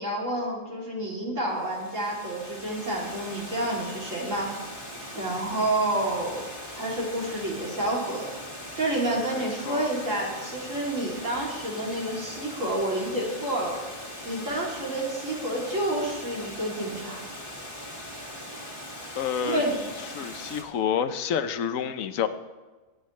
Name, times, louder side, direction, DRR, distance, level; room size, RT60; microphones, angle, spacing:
voice 1, 0.0-4.5 5.1-6.5 6.7-8.3 8.8-13.8 14.2-17.2 19.4-19.7, right 1 dB, 70° right, -4 dB, 3.3 m, -29 dB
Water, 1.5-20.6, left 1 dB, 25° left, 1.8 m, -40 dB
voice 2, 9.3-9.9 19.2-19.6 20.1-22.3, left 8 dB, 85° left, 11 dB, 1.1 m, -29 dB
23.0 x 8.5 x 3.2 m, 1.2 s
omnidirectional pair, 1.4 m